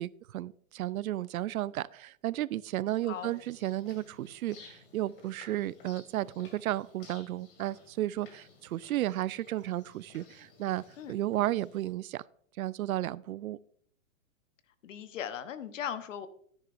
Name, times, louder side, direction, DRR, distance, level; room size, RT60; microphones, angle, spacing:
voice 1, 0.0-12.2 12.6-13.6, right 14 dB, 90° right, 20 dB, 0.5 m, -33 dB
sound 1, 3.1-11.9, left 4 dB, 40° left, 2.1 m, -56 dB
voice 2, 14.8-16.3, left 9 dB, 65° left, 12 dB, 1.0 m, -38 dB
11.5 x 10.0 x 2.5 m, 0.63 s
hypercardioid pair, 170°, 41 cm